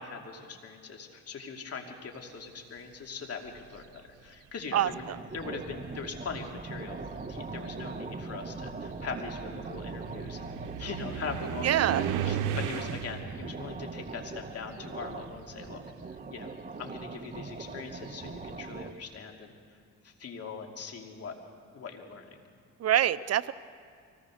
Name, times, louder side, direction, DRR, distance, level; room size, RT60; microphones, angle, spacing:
voice 1, 0.0-3.9 4.2-5.0 5.3-7.0 7.2-10.5 10.8-15.8 16.3-16.5 16.8-19.5 20.0-21.3 21.7-22.3, left 5 dB, 55° left, 2 dB, 2.8 m, -41 dB
sound 1, 3.4-4.0 5.0-5.1 5.7-15.6 15.8-18.5, right 9 dB, 90° right, 0.8 m, -38 dB
sound 2, 4.7-18.9, right 3 dB, 25° right, 1.3 m, -41 dB
voice 2, 11.6-12.0 22.8-23.5, right 11 dB, 55° right, 16 dB, 0.6 m, -25 dB
24.0 x 18.5 x 6.4 m, 2.2 s
cardioid pair, 90°, 30 cm